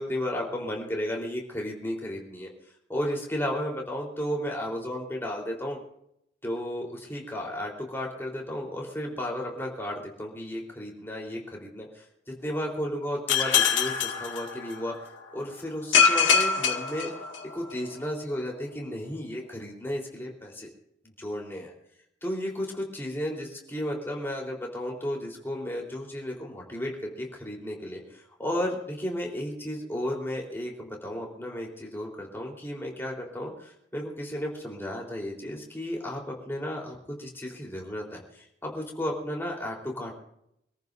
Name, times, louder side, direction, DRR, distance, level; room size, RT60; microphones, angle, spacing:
voice 1, 0.0-2.5 2.9-5.8 6.4-14.9 15.3-17.1 17.5-20.7 21.2-21.7 22.2-40.1, equal, 10° left, -1 dB, 3.9 m, -33 dB
sound 1, 13.3-15.0 15.9-17.7, left 6 dB, 80° left, 2.2 m, -24 dB
26.5 x 14.5 x 2.7 m, 0.76 s
head